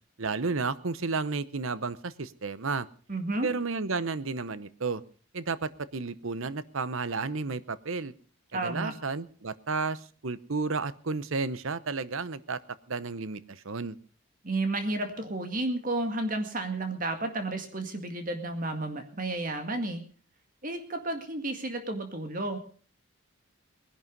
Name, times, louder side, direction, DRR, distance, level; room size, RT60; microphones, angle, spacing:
voice 1, 0.2-2.9 3.4-5.0 5.3-8.1 8.5-12.6 12.9-14.0, right 4 dB, 70° right, 16 dB, 0.9 m, -32 dB
voice 2, 3.1-3.5 8.5-8.9 14.4-20.0 20.6-22.6, right 2 dB, 40° right, 6 dB, 2.1 m, -32 dB
20.0 x 11.0 x 5.4 m, 0.43 s
head